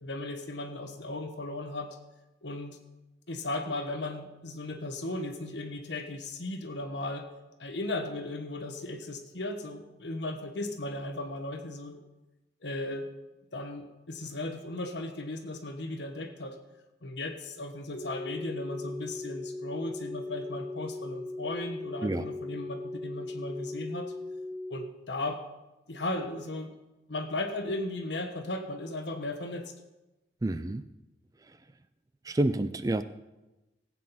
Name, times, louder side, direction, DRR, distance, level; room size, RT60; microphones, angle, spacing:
voice 1, 0.0-2.0 2.4-2.8 3.3-7.3 7.6-12.0 12.6-13.1 13.5-16.6 17.0-24.1 24.7-25.4 25.9-26.7 27.1-29.7, left 2 dB, 70° left, 6 dB, 1.3 m, -36 dB
sound 1, 17.9-24.7, left 2 dB, 40° left, 4.5 m, -38 dB
voice 2, 30.4-30.8 31.4-31.6 32.2-33.0, right 1 dB, 20° right, 12 dB, 0.4 m, -29 dB
16.5 x 8.6 x 4.2 m, 1.0 s
head